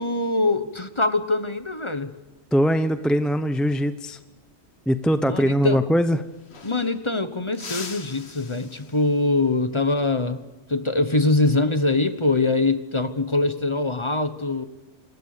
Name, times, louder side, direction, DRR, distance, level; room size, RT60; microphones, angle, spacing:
voice 1, 0.0-2.1 5.2-5.8 6.6-10.4 10.7-14.6, left 2 dB, 25° left, 11 dB, 1.2 m, -23 dB
voice 2, 2.5-4.2 4.9-6.2, equal, ahead, 10 dB, 0.6 m, -21 dB
sound 1, 6.2-7.1 7.5-9.3 11.8-12.1 13.5-14.0, left 4 dB, 55° left, 1.8 m, -41 dB
27.0 x 20.5 x 6.8 m, 1.1 s
omnidirectional pair, 1.3 m